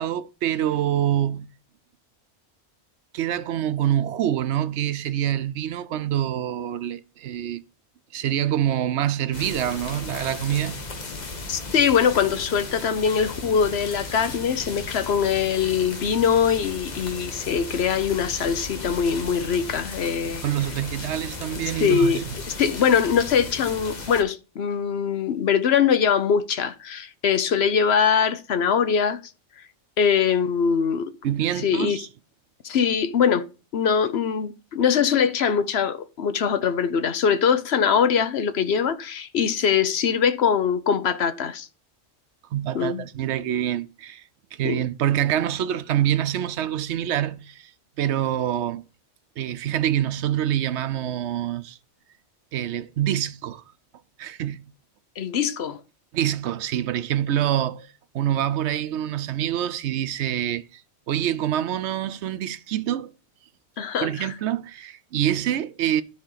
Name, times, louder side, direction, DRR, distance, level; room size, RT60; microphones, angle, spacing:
voice 1, 0.0-1.5 3.1-7.6 8.1-10.9 20.2-22.2 31.2-32.1 42.5-44.2 44.5-47.7 48.0-48.8 49.4-51.8 52.5-53.6 54.2-54.7 56.1-57.9 58.1-60.8 61.1-63.1 64.0-66.0, right 11 dB, 80° right, 0.9 m, -26 dB
sound 1, 9.3-24.2, left 3 dB, 40° left, 1.2 m, -36 dB
voice 2, 11.5-20.5 21.6-29.6 30.0-31.1 31.6-32.0 32.6-33.5 33.7-41.7 42.7-43.0 44.6-44.8 55.2-55.8 63.8-64.4, left 7 dB, 65° left, 1.0 m, -22 dB
12.5 x 4.4 x 3.9 m
omnidirectional pair, 1.2 m